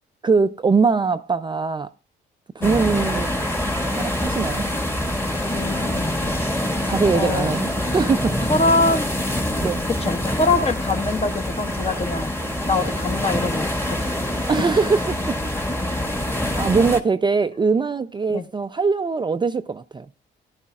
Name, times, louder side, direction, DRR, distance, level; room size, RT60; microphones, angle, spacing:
voice 1, 0.2-1.9 2.6-3.3 3.8-4.7 6.8-8.3 9.6-9.8 14.5-15.4 16.5-20.1, right 4 dB, 25° right, 0.5 m, -21 dB
sound 1, 2.6-17.0, left 1 dB, 10° left, 1.7 m, -25 dB
voice 2, 5.5-6.6 7.1-7.5 8.5-9.1 9.9-12.3 12.6-14.1 18.3-18.4, left 3 dB, 30° left, 1.3 m, -24 dB
17.0 x 11.5 x 2.4 m
cardioid pair, 90°, 20 cm